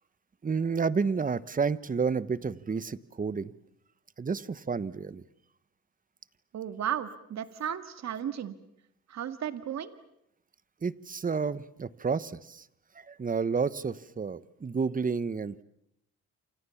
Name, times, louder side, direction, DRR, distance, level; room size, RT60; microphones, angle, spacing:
voice 1, 0.4-3.5 4.2-5.2 10.8-12.6 12.9-15.6, right 5 dB, 25° right, 16 dB, 1.1 m, -30 dB
voice 2, 6.5-8.6 9.1-9.9, right 9 dB, 60° right, 10 dB, 2.0 m, -34 dB
28.5 x 27.5 x 7.2 m, 0.78 s
cardioid pair, 90°, 30 cm